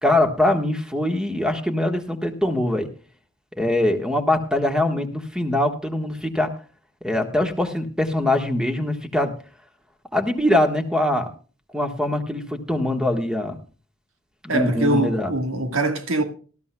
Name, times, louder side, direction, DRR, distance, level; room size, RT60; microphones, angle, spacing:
voice 1, 0.0-2.9 3.6-6.5 7.0-9.3 10.1-11.3 11.7-13.6 14.4-15.3, left 1 dB, 5° right, 1.3 m, -22 dB
voice 2, 14.5-16.2, right 2 dB, 80° right, 1.6 m, -23 dB
19.0 x 13.0 x 2.2 m
head